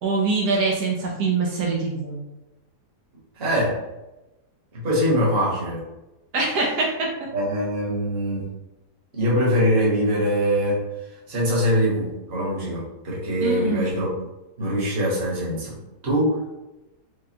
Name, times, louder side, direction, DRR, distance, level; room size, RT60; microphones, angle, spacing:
voice 1, 0.0-2.2 6.3-7.1 13.4-13.9, right 3 dB, 75° right, -3 dB, 1.3 m, -24 dB
voice 2, 3.4-3.8 4.7-5.8 7.3-8.4 9.1-10.8 11.3-14.2 14.6-15.8 16.0-16.4, equal, 40° right, -5 dB, 1.3 m, -23 dB
5.1 x 2.2 x 2.8 m, 0.99 s
omnidirectional pair, 1.8 m